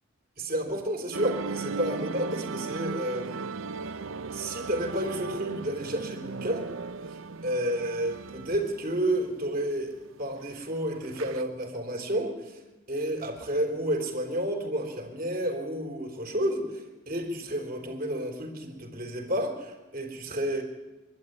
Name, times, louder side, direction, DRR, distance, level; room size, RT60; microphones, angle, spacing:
voice 1, 0.4-3.4 4.3-6.7 7.1-7.2 7.4-12.6 12.9-20.6, right 1 dB, 45° right, 3 dB, 3.7 m, -31 dB
sound 1, 1.1-11.4, right 4 dB, 90° right, 0.7 m, -37 dB
23.5 x 12.0 x 9.4 m, 1.1 s
head